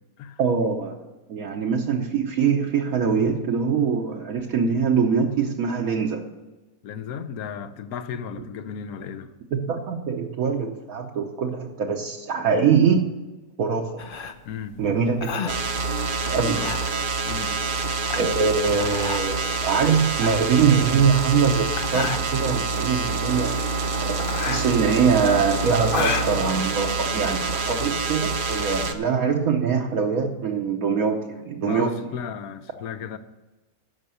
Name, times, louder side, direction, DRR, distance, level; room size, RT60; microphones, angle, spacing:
voice 1, 0.4-1.0 1.3-6.3 9.5-13.3 13.6-14.0 14.8-15.7 16.3-16.7 18.2-32.1, right 6 dB, 70° right, 1.3 m, -23 dB
voice 2, 6.8-9.3 14.4-14.8 16.5-16.8 17.2-17.6 21.8-22.0 31.6-33.2, left 7 dB, 75° left, 1.2 m, -34 dB
sound 1, 14.0-27.5, left 6 dB, 50° left, 0.7 m, -33 dB
sound 2, 15.5-28.9, right 4 dB, 45° right, 0.8 m, -27 dB
11.0 x 6.6 x 6.9 m
omnidirectional pair, 1.6 m